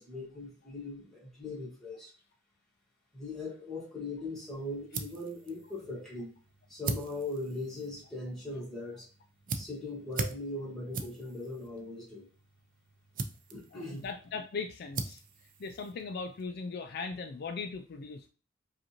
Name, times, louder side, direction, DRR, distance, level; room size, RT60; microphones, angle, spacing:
voice 1, 0.0-2.1 3.1-6.3 6.7-9.1 9.5-12.3 13.5-14.1, left 2 dB, ahead, -5 dB, 1.6 m, -40 dB
sound 1, 4.3-16.5, right 3 dB, 45° right, 0.5 m, -42 dB
voice 2, 13.7-15.2 15.6-18.3, left 4 dB, 55° left, 6 dB, 0.4 m, -39 dB
5.0 x 2.5 x 3.0 m, 0.36 s
head